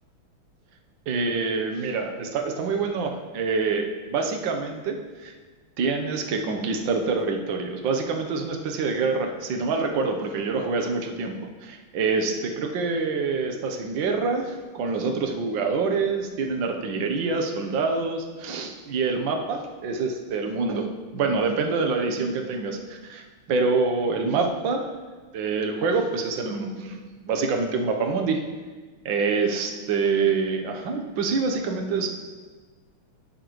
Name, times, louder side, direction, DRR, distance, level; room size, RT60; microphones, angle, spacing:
voice 1, 1.1-5.4 5.8-11.3 11.6-20.9 21.1-24.9 25.3-28.4 29.0-32.1, right 4 dB, 65° right, 3 dB, 1.6 m, -26 dB
18.0 x 6.6 x 3.1 m, 1.4 s
omnidirectional pair, 2.4 m